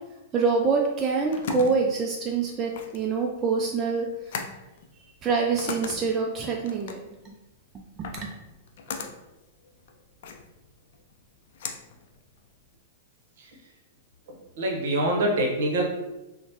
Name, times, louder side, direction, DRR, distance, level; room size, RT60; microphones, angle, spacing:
voice 1, 0.3-4.1 5.2-7.3 8.0-8.3, right 4 dB, 30° right, 0 dB, 0.3 m, -26 dB
sound 1, 0.9-12.8, left 5 dB, 60° left, 0.4 m, -40 dB
voice 2, 14.6-15.8, right 1 dB, 65° right, -1 dB, 0.8 m, -25 dB
3.1 x 2.1 x 2.8 m, 1.0 s
hypercardioid pair, 105°, 0 cm